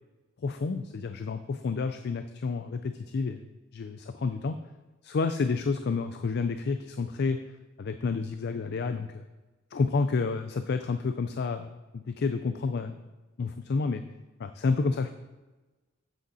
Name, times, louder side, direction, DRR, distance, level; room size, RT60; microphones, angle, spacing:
voice 1, 0.4-3.4 3.7-4.6 5.0-7.4 7.8-9.2 9.7-13.0 13.4-14.0 14.4-15.1, left 4 dB, 55° left, 9 dB, 0.4 m, -30 dB
8.0 x 7.9 x 4.2 m, 1.2 s
head